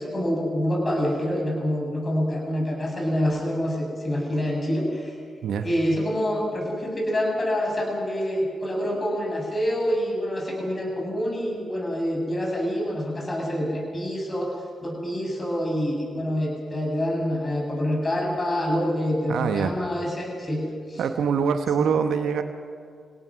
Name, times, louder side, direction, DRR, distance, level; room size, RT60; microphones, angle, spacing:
voice 1, 0.0-5.1 5.6-14.5 14.8-21.0 21.8-21.9, equal, 35° left, 0 dB, 7.6 m, -26 dB
voice 2, 19.3-19.7 21.0-22.4, right 7 dB, 70° right, 8 dB, 1.2 m, -24 dB
27.0 x 18.0 x 6.4 m, 2.1 s
hypercardioid pair, 40°, 0 cm